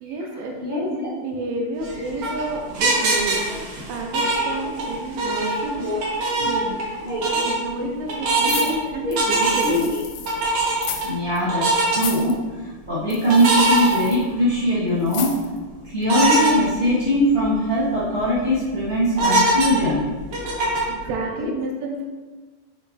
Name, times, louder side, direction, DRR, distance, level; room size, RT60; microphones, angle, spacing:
voice 1, 0.0-5.9 6.4-9.8 20.6-22.0, right 2 dB, 80° right, 1 dB, 2.7 m, -30 dB
sound 1, 1.8-4.9 5.2-6.9 7.2-7.5 8.1-8.7 9.2-9.8 10.3-11.0 11.5-12.0 13.3-14.5 15.0-15.1 16.1-16.5 17.0-17.1 17.4-17.5 18.0-18.3 19.1-21.0, right 2 dB, 65° right, 1.9 m, -22 dB
voice 2, 8.2-8.7 9.0-9.1 9.6-9.8 11.0-12.3 12.9-15.4 15.9-20.1, left 1 dB, 40° left, -11 dB, 0.3 m, -21 dB
sound 2, 8.4-10.4 10.7-11.1 11.4-11.5 11.9-12.3 13.1-14.2 15.1-15.6 16.0-16.1, left 8 dB, 85° left, 2.5 m, -33 dB
8.1 x 4.3 x 3.3 m, 1.3 s
omnidirectional pair, 4.4 m